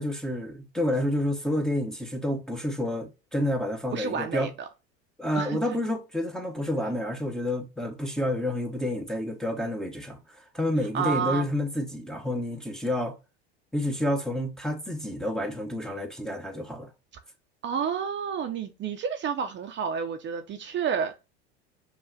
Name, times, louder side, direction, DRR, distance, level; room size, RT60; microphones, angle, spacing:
voice 1, 0.0-4.5 5.2-13.2 13.7-16.9, left 1 dB, ahead, 0.8 m, -29 dB
voice 2, 3.9-4.7 5.3-5.8 10.9-11.5 17.6-21.1, right 7 dB, 35° right, 0.6 m, -30 dB
5.6 x 2.4 x 2.7 m
hypercardioid pair, 90°, 34 cm